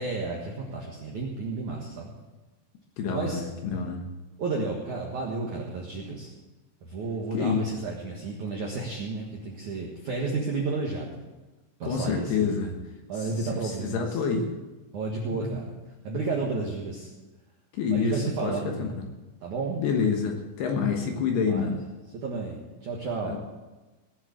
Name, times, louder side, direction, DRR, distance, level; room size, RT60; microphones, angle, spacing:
voice 1, 0.0-2.1 3.1-3.4 4.4-6.3 6.8-11.2 11.8-12.6 13.1-14.1 14.9-15.7 16.0-17.1 17.9-19.0 19.4-19.8 20.8-21.1 21.4-21.7 22.1-23.4, right 3 dB, 65° right, -1 dB, 1.9 m, -32 dB
voice 2, 3.0-4.0 7.3-7.6 11.8-12.8 13.2-14.5 15.3-15.6 17.7-19.1 19.8-21.8 23.2-23.4, left 5 dB, 65° left, 2 dB, 2.8 m, -28 dB
18.5 x 7.3 x 8.1 m, 1.2 s
omnidirectional pair, 5.9 m